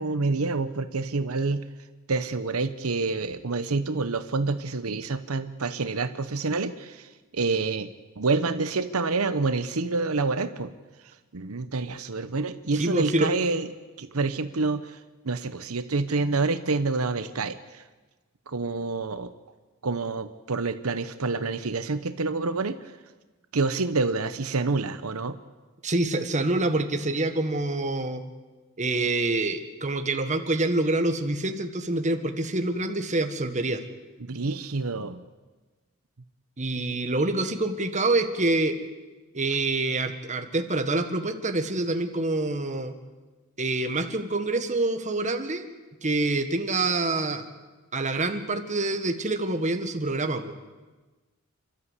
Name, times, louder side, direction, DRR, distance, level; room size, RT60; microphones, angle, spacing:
voice 1, 0.0-1.6 2.1-7.9 8.2-10.7 11.0-13.7 14.0-17.8 18.5-19.3 19.8-22.9 23.5-25.4 34.2-35.2, right 3 dB, 85° right, 11 dB, 0.9 m, -28 dB
voice 2, 12.8-13.3 25.8-28.2 28.8-33.8 36.6-38.8 39.3-43.0 43.6-45.7 46.0-47.5 47.9-50.5, right 2 dB, 35° right, 7 dB, 1.6 m, -26 dB
29.0 x 12.5 x 8.3 m, 1.3 s
head